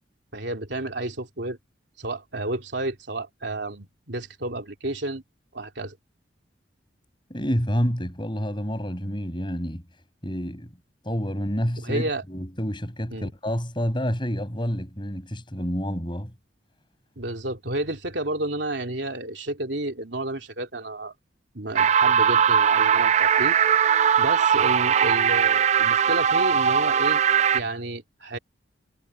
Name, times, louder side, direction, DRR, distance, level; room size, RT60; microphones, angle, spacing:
voice 1, 0.3-1.6 2.0-5.2 5.5-6.0 11.8-12.2 13.1-13.3 17.2-21.1 21.5-23.6 24.2-27.2 27.5-28.4, right 2 dB, 70° right, 3.1 m, -31 dB
voice 2, 7.3-9.8 10.2-10.7 11.0-16.3, equal, 25° left, 7.0 m, -28 dB
sound 1, 21.8-27.6, right 8 dB, 35° right, 0.4 m, -20 dB
head